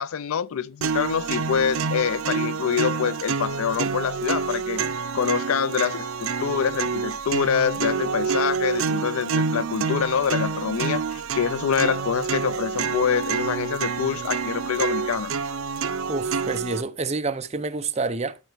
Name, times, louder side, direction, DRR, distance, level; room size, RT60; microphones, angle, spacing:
voice 1, 0.0-4.9 5.1-15.3, left 7 dB, 85° left, 0.4 m, -26 dB
sound 1, 0.8-16.8, right 5 dB, 80° right, 0.6 m, -27 dB
voice 2, 16.1-18.4, right 3 dB, 30° right, 0.6 m, -28 dB
11.5 x 4.5 x 4.5 m
head